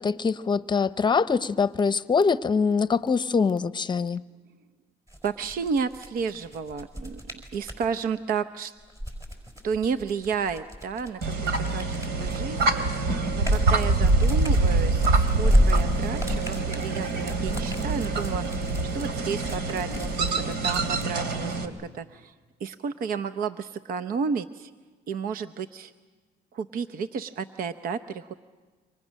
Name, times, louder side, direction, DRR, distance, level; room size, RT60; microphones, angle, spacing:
voice 1, 0.0-4.2, left 5 dB, 25° left, 13 dB, 0.8 m, -24 dB
sound 1, 5.1-7.9 8.8-12.6 13.0-21.1, equal, 20° right, 5.3 m, -30 dB
voice 2, 5.2-7.2 7.5-8.7 9.6-12.9 13.3-18.7 18.9-22.3 22.6-24.7 25.1-25.9 26.5-28.3, right 6 dB, 60° right, 11 dB, 0.8 m, -32 dB
sound 2, 11.2-21.7, right 3 dB, 85° right, 2.7 m, -25 dB
29.0 x 25.0 x 6.4 m, 1.4 s
cardioid pair, 110°, 17 cm